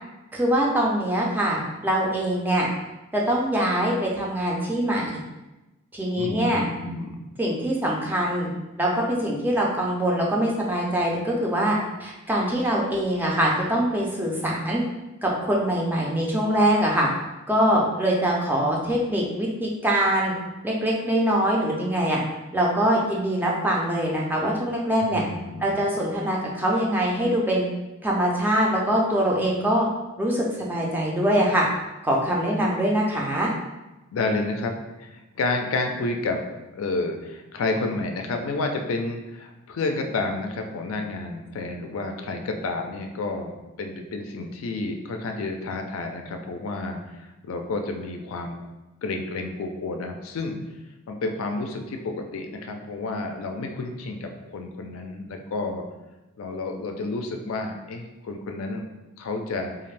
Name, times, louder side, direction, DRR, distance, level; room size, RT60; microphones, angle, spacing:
voice 1, 0.3-2.7 3.1-5.1 5.9-6.6 7.4-8.5 8.8-14.8 15.2-17.1 17.5-20.3 20.6-22.2 22.5-25.2 25.6-27.7 28.0-29.9 30.2-31.7 32.0-33.5, right 1 dB, 10° right, -3 dB, 0.4 m, -23 dB
voice 2, 6.2-7.2 25.0-25.7 34.1-36.4 36.7-48.6 49.0-50.5 51.1-55.8 56.4-58.8 59.2-59.7, left 3 dB, 85° left, 4 dB, 0.4 m, -30 dB
2.5 x 2.4 x 3.2 m, 1.0 s
head